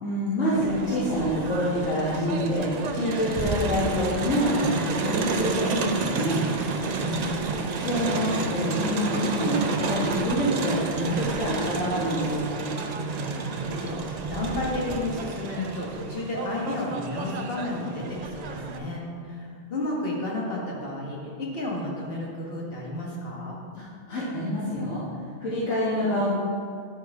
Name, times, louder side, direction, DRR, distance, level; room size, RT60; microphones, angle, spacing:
voice 1, 0.0-6.4 7.8-12.4 23.7-25.0 25.4-26.3, left 1 dB, 75° left, -10 dB, 1.7 m, -26 dB
Crowd, 0.5-18.8, right 4 dB, 65° right, 0.4 m, -30 dB
voice 2, 6.9-7.7 13.0-23.6, left 1 dB, 50° left, -3 dB, 1.5 m, -32 dB
10.5 x 4.6 x 3.5 m, 2.2 s
omnidirectional pair, 1.3 m